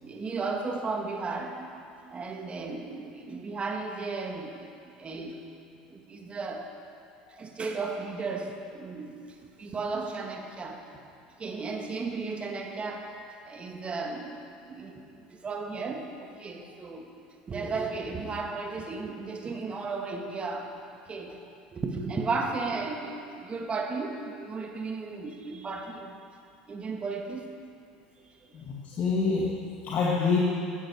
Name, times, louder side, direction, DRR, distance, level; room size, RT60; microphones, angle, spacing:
voice 1, 0.0-5.4 5.9-6.7 7.3-10.8 11.4-17.0 17.5-20.7 21.1-21.4 21.7-26.2 26.7-27.7 28.2-28.5, right 4 dB, 30° right, 3 dB, 1.8 m, -35 dB
voice 2, 28.5-30.4, left 4 dB, 45° left, -4 dB, 2.0 m, -27 dB
15.0 x 13.5 x 4.7 m, 2.4 s
hypercardioid pair, 75°, 4 cm